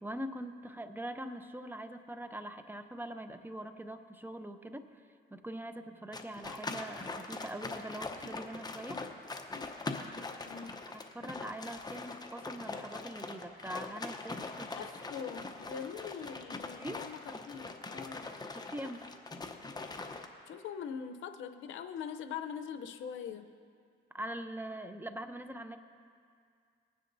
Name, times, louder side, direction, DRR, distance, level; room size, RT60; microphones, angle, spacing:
voice 1, 0.0-5.0 5.3-9.0 11.1-14.8 16.8-17.0 18.5-19.0 24.1-25.8, right 1 dB, 10° right, 8 dB, 0.6 m, -43 dB
sound 1, 6.1-20.3, left 3 dB, 20° left, 0.8 m, -42 dB
voice 2, 10.5-10.8 14.7-18.3 20.5-23.5, left 7 dB, 80° left, 8 dB, 0.6 m, -42 dB
20.0 x 9.7 x 2.7 m, 2.2 s
cardioid pair, 90°, 20 cm